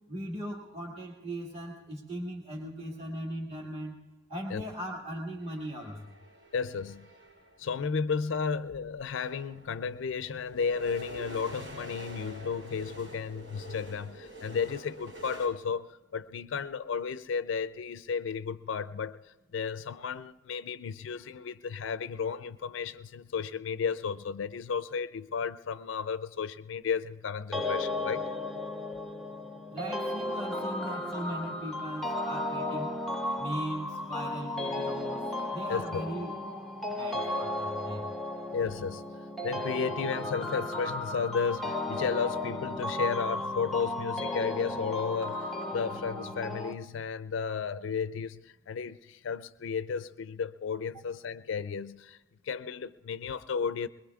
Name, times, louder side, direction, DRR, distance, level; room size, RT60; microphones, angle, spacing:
voice 1, 0.1-4.0 4.3-6.2 29.7-33.0 33.4-36.3 36.9-38.1, equal, 30° right, -3 dB, 1.9 m, -39 dB
sound 1, 5.4-7.6 8.6-8.7 9.0-15.5, right 1 dB, 85° right, 5.4 m, -47 dB
voice 2, 6.5-7.1 7.6-28.3 35.7-36.0 38.5-39.1 39.4-52.2 52.4-53.9, left 6 dB, 80° left, 13 dB, 0.4 m, -33 dB
sound 2, 27.5-46.7, left 1 dB, ahead, 0.6 m, -34 dB
21.5 x 21.5 x 2.4 m, 1.1 s
head